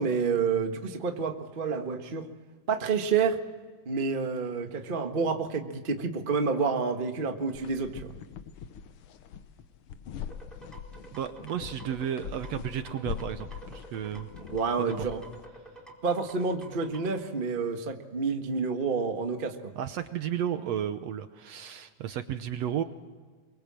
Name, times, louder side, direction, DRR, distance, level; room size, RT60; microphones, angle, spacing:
voice 1, 0.0-2.3 2.7-3.4 3.8-8.1 14.4-15.2 16.0-19.7, right 5 dB, 45° right, 5 dB, 0.6 m, -29 dB
sound 1, 7.5-15.5, left 8 dB, 85° left, 1.2 m, -42 dB
sound 2, 10.3-17.2, right 2 dB, ahead, 4.1 m, -48 dB
voice 2, 11.1-14.3 15.0-15.1 19.8-22.8, right 9 dB, 70° right, 9 dB, 1.7 m, -33 dB
24.0 x 23.5 x 7.6 m, 1.5 s
omnidirectional pair, 3.7 m